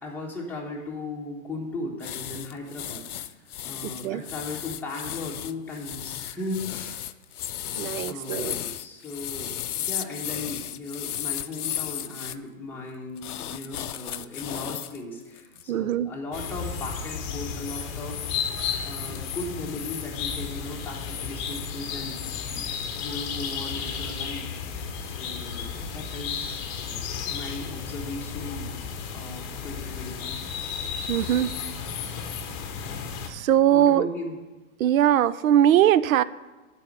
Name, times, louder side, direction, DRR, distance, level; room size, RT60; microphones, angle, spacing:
voice 1, 0.0-7.0 8.1-18.3 18.6-22.2 22.5-28.7 29.1-30.4 31.1-31.4 33.7-34.4, left 2 dB, 5° left, -4 dB, 1.3 m, -37 dB
sound 1, 2.0-12.4 13.2-15.0 15.4-15.6, left 11 dB, 90° left, 0.6 m, -34 dB
voice 2, 3.8-4.2 7.8-8.6 15.7-16.1 31.1-31.5 33.2-34.1 34.8-36.2, right 11 dB, 70° right, 17 dB, 0.5 m, -21 dB
sound 2, 16.3-33.3, left 7 dB, 30° left, 0.9 m, -33 dB
9.0 x 4.2 x 6.7 m, 1.2 s
hypercardioid pair, 130°, 43 cm